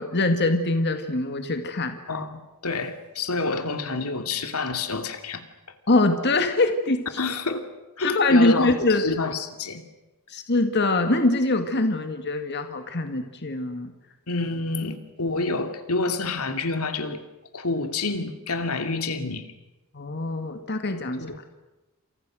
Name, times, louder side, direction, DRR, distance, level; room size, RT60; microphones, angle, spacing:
voice 1, 0.0-2.0 5.9-7.0 8.0-9.0 10.3-13.9 19.9-21.2, left 2 dB, 50° left, 7 dB, 2.1 m, -23 dB
voice 2, 2.1-5.4 7.2-7.7 8.0-9.8 14.3-17.2 17.5-19.5 21.2-21.4, left 3 dB, 85° left, 7 dB, 2.7 m, -28 dB
29.5 x 28.0 x 6.4 m, 1.0 s
head